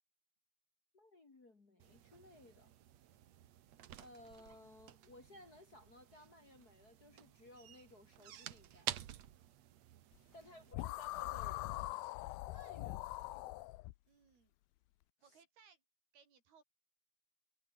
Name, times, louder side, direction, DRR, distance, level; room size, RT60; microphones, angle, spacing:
voice 1, 0.9-2.7 4.0-9.0 10.3-11.8 12.5-13.3 15.2-15.4, left 1 dB, 30° left, 2.6 m, -59 dB
sound 1, 1.8-10.7, right 11 dB, 60° right, 2.0 m, -51 dB
voice 2, 10.3-11.0 14.1-14.5 15.2-15.8 16.1-16.6, right 6 dB, 85° right, 6.3 m, -67 dB
sound 2, 10.7-13.9, left 19 dB, 85° left, 2.4 m, -42 dB
omnidirectional pair, 4.3 m